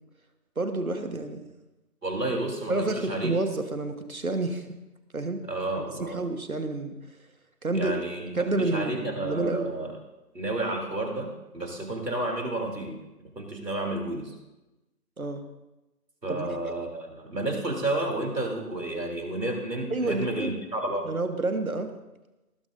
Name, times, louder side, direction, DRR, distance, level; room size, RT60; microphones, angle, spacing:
voice 1, 0.5-1.5 2.7-4.7 5.1-5.4 6.0-6.9 7.6-8.0 8.3-9.7 15.2-15.4 16.3-16.7 19.9-20.6 21.0-21.9, right 2 dB, 60° right, 7 dB, 1.5 m, -29 dB
voice 2, 2.0-3.3 5.4-6.2 7.7-10.0 10.3-13.0 13.3-14.3 16.2-21.1, right 2 dB, 85° right, 1 dB, 3.5 m, -31 dB
19.5 x 12.5 x 2.7 m, 1.0 s
figure-of-eight pair, 180°, 47 cm